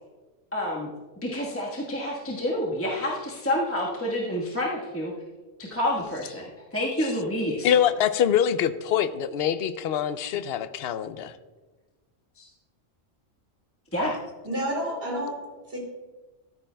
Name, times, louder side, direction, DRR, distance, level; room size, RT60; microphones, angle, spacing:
voice 1, 0.5-0.9 1.2-5.1 5.7-6.4 6.7-7.7 12.4-12.5 13.9-14.1, left 1 dB, 10° left, -4 dB, 1.3 m, -28 dB
voice 2, 7.6-11.3, left 9 dB, 60° left, 12 dB, 0.7 m, -24 dB
voice 3, 14.4-15.8, equal, 50° right, -1 dB, 3.0 m, -30 dB
14.0 x 13.5 x 2.2 m, 1.3 s
omnidirectional pair, 1.3 m